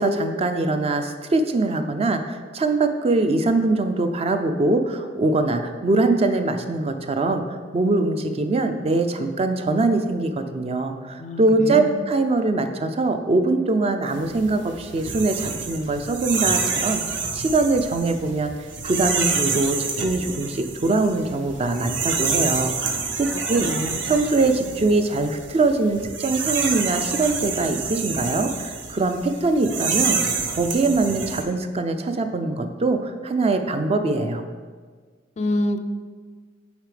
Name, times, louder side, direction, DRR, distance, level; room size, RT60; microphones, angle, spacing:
voice 1, 0.0-17.0 17.3-18.5 18.8-23.7 24.0-34.5, right 2 dB, 35° right, 7 dB, 0.4 m, -22 dB
voice 2, 11.2-11.9 23.3-24.0 35.4-35.8, left 1 dB, 40° left, 8 dB, 0.3 m, -27 dB
sound 1, 14.2-31.4, right 5 dB, 70° right, 0.7 m, -28 dB
8.1 x 4.1 x 3.3 m, 1.5 s
head